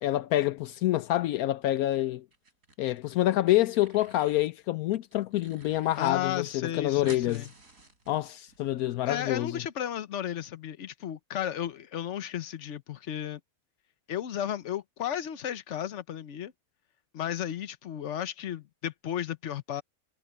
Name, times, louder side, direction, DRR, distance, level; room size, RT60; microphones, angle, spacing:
voice 1, 0.0-2.2 2.8-7.4 8.1-9.6, left 15 dB, 80° left, 1.0 m, -27 dB
sound 1, 2.3-3.0 3.3-4.5 4.9-6.1 6.4-6.5 6.7-8.6, right 3 dB, 70° right, 4.3 m, -51 dB
voice 2, 6.0-7.5 9.1-13.4 14.1-16.5 17.1-19.8, left 10 dB, 55° left, 1.2 m, -34 dB
omnidirectional pair, 1.5 m